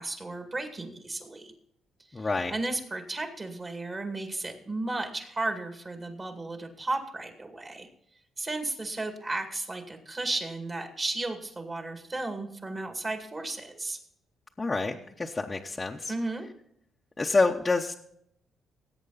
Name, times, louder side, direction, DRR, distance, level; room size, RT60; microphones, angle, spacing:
voice 1, 0.0-1.5 2.1-7.9 8.4-14.0 16.1-16.5, right 2 dB, 30° right, 5 dB, 2.2 m, -34 dB
voice 2, 2.1-2.5 14.6-16.1 17.2-17.9, left 3 dB, 25° left, 0 dB, 0.9 m, -27 dB
18.0 x 8.1 x 4.0 m, 0.71 s
cardioid pair, 90°, 0 cm